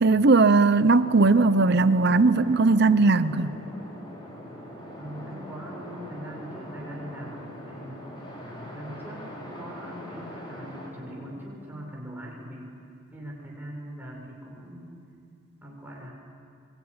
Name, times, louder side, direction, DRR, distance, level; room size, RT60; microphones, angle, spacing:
voice 1, 0.0-3.5, right 3 dB, 50° right, 14 dB, 0.7 m, -19 dB
sound 1, 0.8-11.3, left 1 dB, 25° left, 5.3 m, -42 dB
voice 2, 4.9-8.0 8.4-12.7 13.1-14.9 15.6-16.1, equal, 10° right, -3 dB, 6.7 m, -41 dB
25.5 x 24.0 x 9.7 m, 2.4 s
head